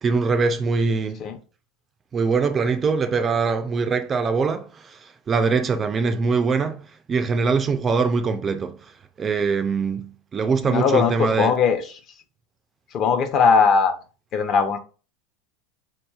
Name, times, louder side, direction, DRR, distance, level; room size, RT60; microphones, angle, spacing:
voice 1, 0.0-1.2 2.1-11.6, right 4 dB, 20° right, 0.3 m, -23 dB
voice 2, 10.6-11.8 12.9-13.9 14.3-14.8, left 6 dB, 35° left, 0.5 m, -19 dB
4.5 x 2.9 x 2.3 m
supercardioid pair, 150°, 0 cm